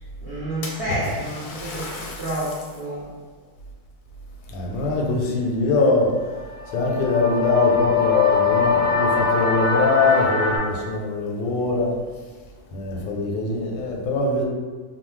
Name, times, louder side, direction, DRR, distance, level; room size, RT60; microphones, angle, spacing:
voice 1, 0.2-3.1, right 1 dB, 65° right, -11 dB, 0.5 m, -29 dB
Splash splatter, 0.6-2.9 3.4-3.5 4.4-5.5 5.8-6.3 7.1-7.2 7.7-7.8 9.9-10.0 10.3-10.4 11.0-11.1 11.5-11.6 12.3-12.9, left 2 dB, 75° left, 0.9 m, -35 dB
voice 2, 4.5-6.1 6.7-11.9 12.7-14.4, left 3 dB, 90° left, 0 dB, 1.3 m, -22 dB
sound 1, 6.3-10.6, left 5 dB, 35° right, 1.1 m, -22 dB
3.2 x 2.1 x 3.1 m, 1.5 s
omnidirectional pair, 2.0 m